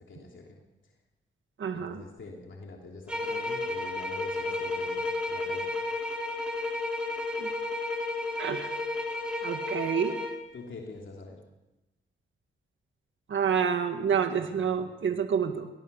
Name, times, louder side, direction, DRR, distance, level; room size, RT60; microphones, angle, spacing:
voice 1, 0.1-0.9 1.7-5.7 10.5-11.4, left 3 dB, 65° left, 0 dB, 3.2 m, -45 dB
voice 2, 1.6-2.0 7.4-7.5 8.4-8.7 9.4-10.2 13.3-15.7, right 7 dB, 70° right, 7 dB, 1.7 m, -28 dB
sound 1, 3.1-10.4, left 2 dB, 5° right, 3.9 m, -32 dB
23.5 x 17.5 x 7.0 m, 1.0 s
cardioid pair, 80°, 21 cm